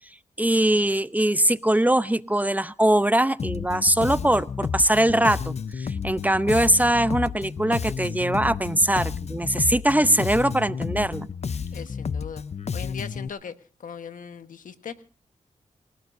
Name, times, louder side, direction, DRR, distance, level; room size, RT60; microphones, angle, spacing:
voice 1, 0.4-11.3, right 1 dB, 10° right, 14 dB, 0.7 m, -22 dB
Bass guitar, 3.4-13.3, left 6 dB, 55° left, 0.7 m, -31 dB
voice 2, 11.7-12.4 12.7-15.0, left 7 dB, 85° left, 9 dB, 1.4 m, -39 dB
28.0 x 17.0 x 2.6 m, 0.39 s
cardioid pair, 65°, 13 cm